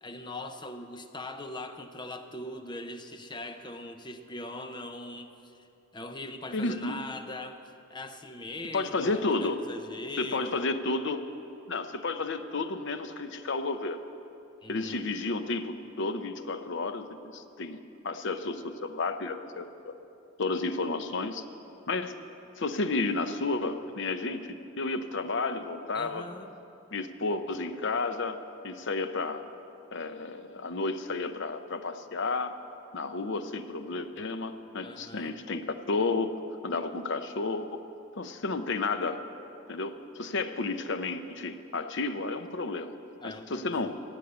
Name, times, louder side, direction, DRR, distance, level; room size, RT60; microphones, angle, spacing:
voice 1, 0.0-5.7 5.9-10.7 14.6-15.1 25.9-26.5 34.8-35.4 43.2-44.0, left 1 dB, 25° left, 7 dB, 0.7 m, -41 dB
voice 2, 6.5-6.9 8.7-9.6 10.2-11.2 11.7-14.0 14.7-19.9 20.4-21.4 21.9-22.1 22.6-24.5 24.8-26.3 26.9-28.4 28.6-29.4 29.9-32.5 32.9-36.3 36.6-37.8 38.1-39.2 39.7-42.9 43.2-43.9, left 3 dB, 65° left, 9 dB, 0.7 m, -32 dB
15.5 x 8.3 x 8.1 m, 2.7 s
head